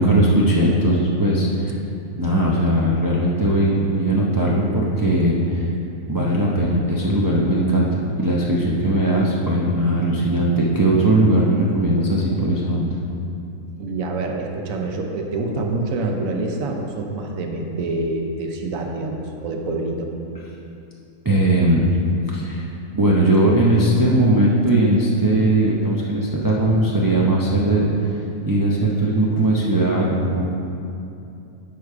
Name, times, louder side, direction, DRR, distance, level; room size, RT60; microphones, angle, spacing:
voice 1, 0.0-1.7 2.2-5.7 6.1-13.0 21.2-21.9 22.3-22.7 22.9-27.9 28.5-30.4, right 1 dB, 30° right, -5 dB, 0.4 m, -19 dB
voice 2, 13.8-20.1 24.7-24.8, right 2 dB, 65° right, 2 dB, 1.1 m, -26 dB
9.3 x 4.9 x 4.7 m, 2.6 s
omnidirectional pair, 1.6 m